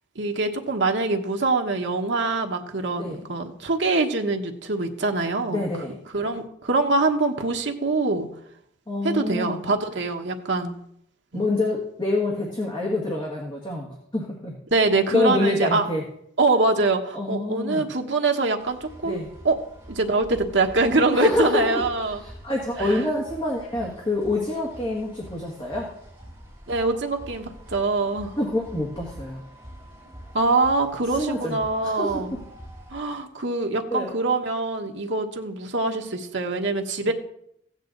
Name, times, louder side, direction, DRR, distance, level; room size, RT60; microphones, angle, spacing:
voice 1, 0.1-5.7 6.1-8.3 9.0-10.7 11.3-11.5 14.7-15.9 16.4-19.2 19.4-19.6 19.9-22.2 22.9-23.0 26.7-28.3 30.3-32.3 32.9-37.1, right 3 dB, 65° right, 3 dB, 1.3 m, -24 dB
voice 2, 5.5-6.0 8.9-9.6 11.3-14.6 15.1-16.0 17.1-17.8 19.0-19.3 21.1-21.8 22.1-25.9 28.4-29.5 31.1-32.4 33.9-34.2 37.1-37.2, left 2 dB, 25° left, -2 dB, 1.7 m, -26 dB
sound 1, 18.6-33.0, equal, 15° right, 4.9 m, -45 dB
15.5 x 9.0 x 4.0 m, 0.74 s
head